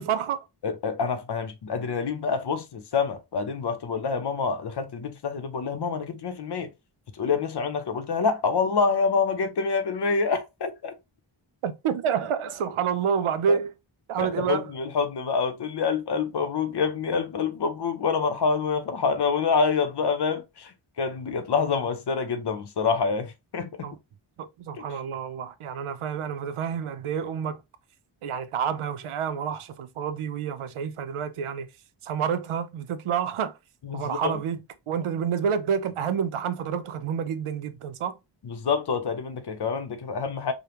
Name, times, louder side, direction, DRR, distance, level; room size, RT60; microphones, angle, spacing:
voice 1, 0.0-0.4 11.6-13.7 14.1-14.7 23.8-24.0 24.4-27.6 28.2-31.7 32.0-33.6 33.9-34.6 34.9-38.2, right 7 dB, 90° right, 0.6 m, -28 dB
voice 2, 0.6-6.7 7.1-10.9 13.5-13.6 14.2-23.7 24.7-24.8 33.8-34.4 38.4-40.5, left 5 dB, 55° left, 0.7 m, -27 dB
5.0 x 2.1 x 2.9 m
wide cardioid pair, 140°, 48 cm